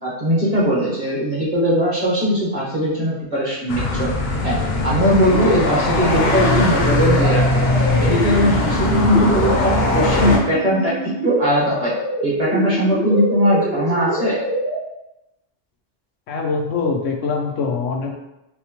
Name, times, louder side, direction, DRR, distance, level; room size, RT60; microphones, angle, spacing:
voice 1, 0.0-4.1 4.4-4.6 4.8-7.6 7.9-10.9 11.2-11.9 12.2-14.4, equal, 35° right, -6 dB, 0.9 m, -19 dB
sound 1, 3.7-10.4, left 2 dB, 60° left, 0.8 m, -20 dB
sound 2, 5.2-14.8, right 2 dB, 10° right, 0.4 m, -26 dB
voice 2, 16.3-18.1, left 4 dB, 85° left, 2 dB, 0.9 m, -23 dB
4.2 x 2.1 x 2.9 m, 0.91 s
omnidirectional pair, 1.2 m